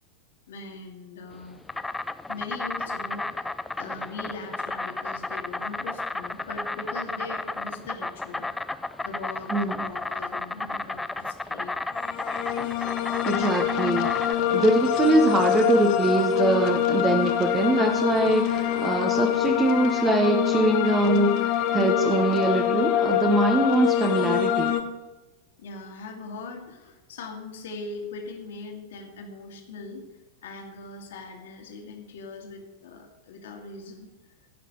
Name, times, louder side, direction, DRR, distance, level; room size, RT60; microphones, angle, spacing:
voice 1, 0.5-1.6 2.3-8.5 9.0-11.8 25.6-30.1 30.4-34.1, left 3 dB, 60° left, 2 dB, 2.0 m, -40 dB
Insect, 1.3-14.3, left 2 dB, 5° left, 0.4 m, -33 dB
voice 2, 9.5-9.9 13.2-24.7, right 2 dB, 20° right, 4 dB, 1.1 m, -23 dB
sound 1, 11.9-24.8, left 11 dB, 45° left, 1.0 m, -25 dB
16.5 x 5.9 x 4.7 m, 1.1 s
figure-of-eight pair, 90°, 0 cm